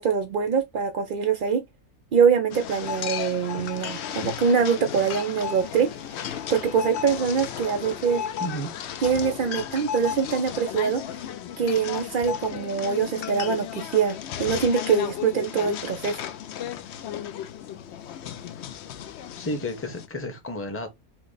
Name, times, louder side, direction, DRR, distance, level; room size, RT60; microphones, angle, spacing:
voice 1, 0.0-1.6 2.1-8.2 9.0-11.0 11.6-16.2, right 6 dB, 75° right, 0.4 m, -24 dB
sound 1, 2.5-20.1, left 9 dB, 65° left, 0.7 m, -35 dB
sound 2, 2.8-9.0, left 8 dB, 90° left, 1.2 m, -43 dB
voice 2, 8.4-8.7 19.4-20.9, equal, 10° left, 0.8 m, -32 dB
5.8 x 2.1 x 4.0 m
omnidirectional pair, 1.5 m